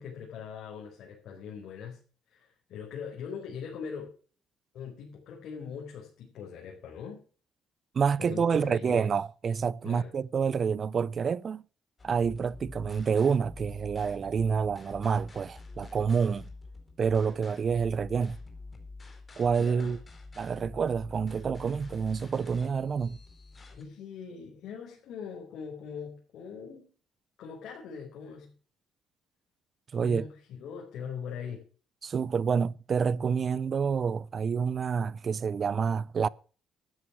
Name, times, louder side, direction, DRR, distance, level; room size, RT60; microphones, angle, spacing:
voice 1, 0.0-2.0 2.3-4.1 4.7-7.2 8.2-9.1 9.8-10.1 19.6-20.0 23.7-26.9 27.4-28.5 29.9-31.6, left 6 dB, 70° left, 4.6 m, -41 dB
voice 2, 7.9-11.6 12.0-16.5 17.0-18.4 19.4-20.0 20.4-23.2 29.9-30.2 32.0-36.3, right 6 dB, 40° right, 0.5 m, -28 dB
sound 1, 12.0-23.8, left 3 dB, 25° left, 4.1 m, -47 dB
13.0 x 9.5 x 6.1 m
cardioid pair, 115°, 0 cm